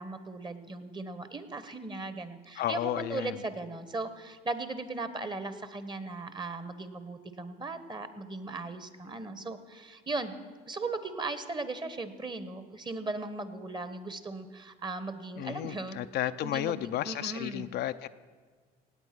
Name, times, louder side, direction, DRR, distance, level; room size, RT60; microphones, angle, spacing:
voice 1, 0.0-10.3 10.7-16.0 16.4-17.7, right 3 dB, 25° right, 11 dB, 1.3 m, -38 dB
voice 2, 2.6-3.4 15.3-18.1, left 12 dB, 55° left, 10 dB, 0.5 m, -33 dB
18.0 x 8.5 x 6.0 m, 1.5 s
hypercardioid pair, 70°, 20 cm